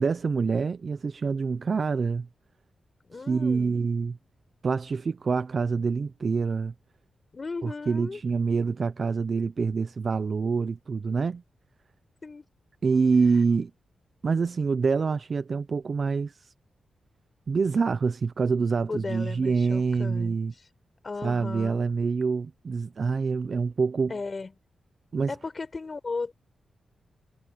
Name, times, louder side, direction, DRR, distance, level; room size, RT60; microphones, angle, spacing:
voice 1, 0.0-2.3 3.3-4.2 4.6-6.7 7.6-11.4 12.8-13.7 14.2-16.5 17.5-20.5 21.2-24.1 25.1-25.3, right 5 dB, 40° right, 0.5 m, -26 dB
voice 2, 3.0-3.8 7.3-8.2 12.2-12.5 18.9-20.7 21.0-21.8 24.1-24.5 25.3-26.4, left 4 dB, 30° left, 4.4 m, -36 dB
wide cardioid pair, 160°, 0 cm